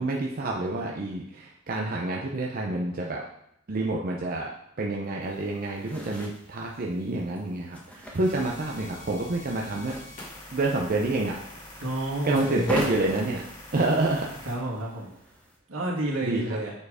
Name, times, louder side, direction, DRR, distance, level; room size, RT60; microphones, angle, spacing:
voice 1, 0.0-3.2 3.7-4.5 4.8-9.9 10.5-11.4 12.2-13.4 13.7-14.3 16.2-16.6, right 2 dB, 45° right, -1 dB, 0.7 m, -28 dB
sound 1, 5.2-15.6, equal, 5° left, 1.1 m, -41 dB
sound 2, 8.2-14.6, left 1 dB, 40° left, 2.4 m, -45 dB
voice 2, 11.8-12.8 14.5-15.1 15.7-16.7, right 1 dB, 80° right, -3 dB, 2.1 m, -30 dB
7.1 x 4.5 x 4.9 m, 0.75 s
head